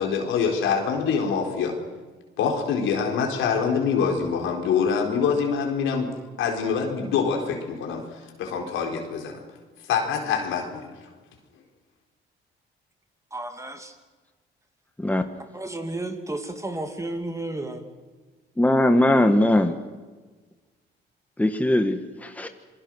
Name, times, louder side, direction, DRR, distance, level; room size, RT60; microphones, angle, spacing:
voice 1, 0.0-1.7 2.4-6.1 6.4-8.0 8.4-9.4 9.9-10.9, left 6 dB, 90° left, 4.2 m, -25 dB
voice 2, 13.3-14.0 15.5-17.8, right 2 dB, 15° right, 2.8 m, -32 dB
voice 3, 18.6-19.8 21.4-22.5, left 1 dB, 5° left, 1.6 m, -20 dB
27.0 x 21.5 x 6.4 m
cardioid pair, 90°, 20 cm